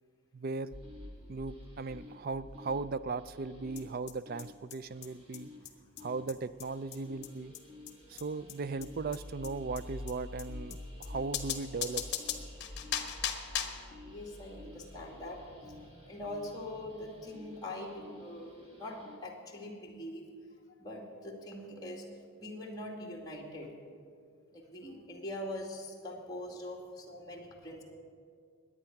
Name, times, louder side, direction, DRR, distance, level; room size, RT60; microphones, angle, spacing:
voice 1, 0.3-0.7 1.3-5.5 6.0-7.5 8.1-12.0, right 4 dB, 45° right, 15 dB, 0.4 m, -37 dB
sound 1, 0.7-19.2, left 1 dB, 25° right, 2.1 m, -49 dB
sound 2, 3.8-3.9 4.1-4.2 4.4-4.5 4.7-4.8 5.0-5.1 5.3-5.4 5.6-5.7 6.0-6.1 6.3-6.4 6.6-6.7 6.9-7.0 7.2-7.3 7.5-7.6 7.9-8.0 8.2-8.3 8.5-8.6 8.8-8.9 9.1-9.2 9.4-9.5 9.8-9.9 10.1-10.2 10.4-10.5 10.7-10.8 11.0-11.1 11.3-13.9, left 9 dB, 50° left, 1.1 m, -37 dB
voice 2, 14.0-18.5 18.8-20.2 20.8-22.1 22.4-23.7 24.5-27.8, left 1 dB, 20° left, -1 dB, 2.1 m, -43 dB
21.0 x 8.8 x 5.9 m, 2.2 s
head